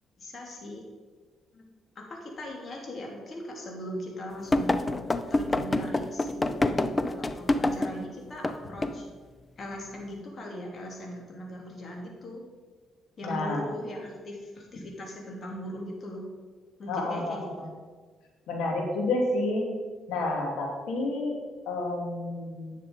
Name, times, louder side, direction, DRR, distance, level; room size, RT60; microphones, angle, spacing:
voice 1, 0.2-0.8 1.5-1.6 1.9-4.8 5.3-9.2 9.6-12.4 13.2-16.3 16.8-17.5, equal, 45° left, 0 dB, 2.9 m, -39 dB
sound 1, 4.5-8.0 8.4-8.6 8.8-9.0, left 2 dB, 20° left, 0.6 m, -26 dB
voice 2, 13.2-13.8 16.9-17.7 18.5-19.7 20.1-21.3 21.7-22.8, left 2 dB, 85° left, -1 dB, 2.7 m, -30 dB
10.5 x 6.7 x 5.2 m, 1.4 s
cardioid pair, 90°, 0 cm